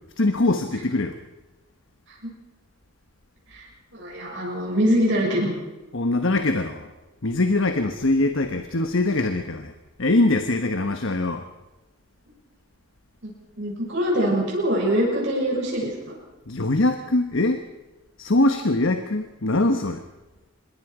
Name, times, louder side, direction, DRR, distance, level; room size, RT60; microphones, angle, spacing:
voice 1, 0.2-1.2 5.9-6.9 7.2-9.7 10.0-11.4 16.5-17.6 18.2-20.0, left 2 dB, 60° left, 7 dB, 1.2 m, -22 dB
voice 2, 3.9-5.5 13.2-13.3 13.6-15.9, equal, 55° right, -3 dB, 6.5 m, -23 dB
25.5 x 22.0 x 4.9 m, 1.1 s
head